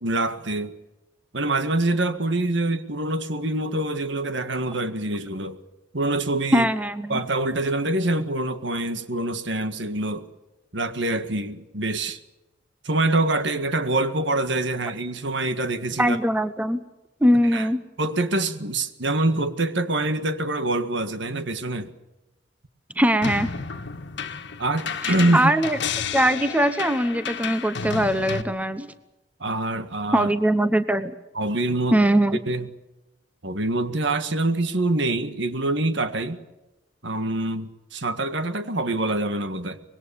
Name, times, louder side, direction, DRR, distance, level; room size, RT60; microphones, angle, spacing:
voice 1, 0.0-0.7 1.3-5.6 5.9-6.7 7.1-10.2 10.7-12.2 12.8-16.2 17.5-17.7 18.0-21.9 24.6-25.5 29.4-30.3 31.3-32.1 32.5-32.7 33.4-36.4 37.0-39.8, right 2 dB, 65° right, 1.8 m, -25 dB
voice 2, 6.5-7.2 16.0-16.8 17.2-17.8 23.0-23.5 25.0-25.8 26.1-28.9 30.1-31.1 31.9-32.4, right 1 dB, 10° right, 0.9 m, -21 dB
sound 1, 23.2-28.4, left 6 dB, 65° left, 1.6 m, -31 dB
25.0 x 21.5 x 6.9 m
head